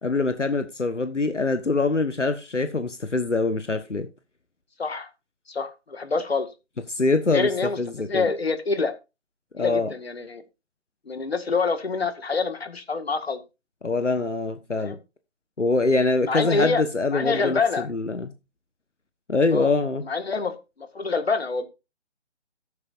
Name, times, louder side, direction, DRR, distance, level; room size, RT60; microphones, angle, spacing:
voice 1, 0.0-4.1 6.9-7.5 7.8-8.3 9.5-9.9 13.8-15.0 15.6-17.6 17.9-18.3 19.3-20.0, left 3 dB, 80° left, 1.3 m, -24 dB
voice 2, 4.8-5.1 5.5-6.5 7.3-7.8 8.1-8.9 9.6-10.4 11.1-13.4 14.8-15.0 16.2-16.8 17.1-17.9 19.5-19.7 20.0-21.7, left 4 dB, 55° left, 1.9 m, -26 dB
13.5 x 9.7 x 2.6 m
figure-of-eight pair, 150°, 36 cm